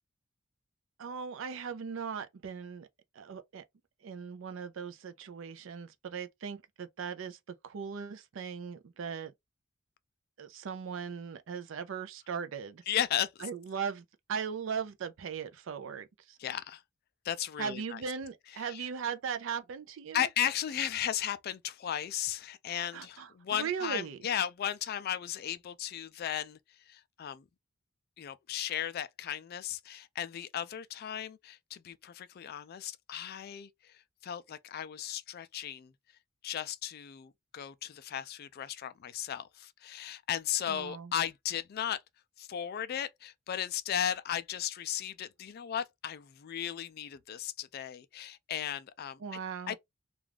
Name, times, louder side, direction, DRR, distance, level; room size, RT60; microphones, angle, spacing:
voice 1, 1.0-2.9 3.1-3.6 4.0-9.3 10.4-12.8 13.4-16.4 17.6-20.3 22.9-24.2 40.7-41.1 49.2-49.8, right 6 dB, 65° right, 0.4 m, -38 dB
voice 2, 12.9-13.5 16.4-16.8 17.2-18.0 18.6-18.8 20.1-26.6 26.9-27.4 28.2-35.9 36.4-42.0 42.4-49.2 49.7-49.8, left 10 dB, 50° left, 0.3 m, -35 dB
2.4 x 2.3 x 3.2 m
head